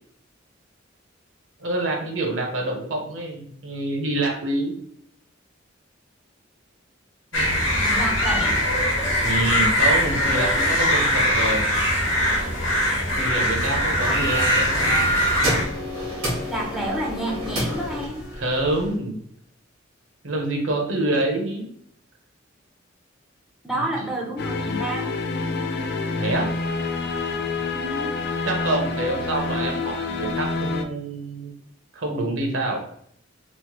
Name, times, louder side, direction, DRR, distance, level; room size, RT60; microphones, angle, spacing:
voice 1, 1.6-4.7 7.3-7.6 9.2-11.7 13.2-15.1 18.3-19.2 20.2-21.7 23.7-23.9 26.1-26.5 28.4-31.5 31.9-32.8, right 2 dB, 70° right, 1 dB, 0.8 m, -26 dB
sound 1, 7.3-15.7, left 1 dB, 70° left, 1.0 m, -22 dB
voice 2, 7.7-8.6 14.1-14.2 16.5-18.2 23.6-25.0 27.7-28.1, right 1 dB, ahead, -2 dB, 0.5 m, -29 dB
sound 2, 14.0-18.9, right 1 dB, 85° right, 1.1 m, -27 dB
sound 3, 24.4-30.8, left 3 dB, 55° left, 0.3 m, -27 dB
3.1 x 2.1 x 3.0 m, 0.67 s
head